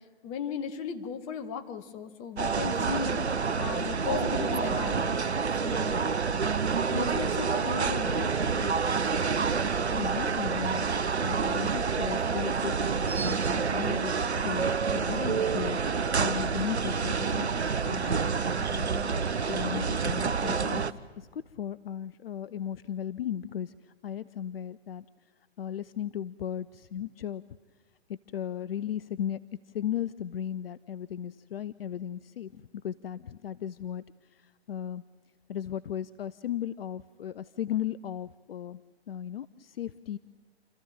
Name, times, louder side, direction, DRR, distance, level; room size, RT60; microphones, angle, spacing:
voice 1, 0.2-5.1 5.6-6.0 6.9-8.8 9.8-10.1, left 7 dB, 30° left, 11 dB, 1.9 m, -36 dB
sound 1, 2.4-20.9, right 5 dB, 85° right, 1.0 m, -28 dB
voice 2, 10.0-18.2 18.6-20.9 21.2-25.0 25.6-27.4 28.1-29.4 29.7-35.0 35.5-38.8 39.1-40.2, left 10 dB, 65° left, 18 dB, 0.7 m, -36 dB
28.5 x 14.0 x 9.1 m, 1.5 s
figure-of-eight pair, 125°, 32 cm